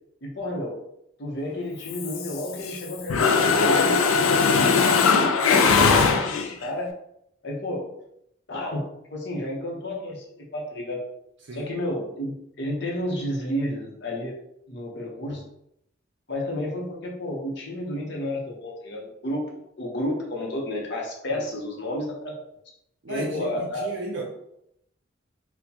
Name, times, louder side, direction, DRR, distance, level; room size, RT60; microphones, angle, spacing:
voice 1, 0.2-0.8 1.2-6.9 7.4-7.9 8.5-11.0 11.5-14.3 14.7-15.4 16.3-22.3 23.1-23.9, left 1 dB, 55° left, -1 dB, 0.8 m, -31 dB
Mechanisms, 1.9-2.8 3.1-6.7, left 5 dB, 90° left, 0.4 m, -20 dB
voice 2, 23.0-24.2, right 2 dB, 60° right, -1 dB, 0.5 m, -34 dB
4.2 x 2.2 x 2.8 m, 0.78 s
head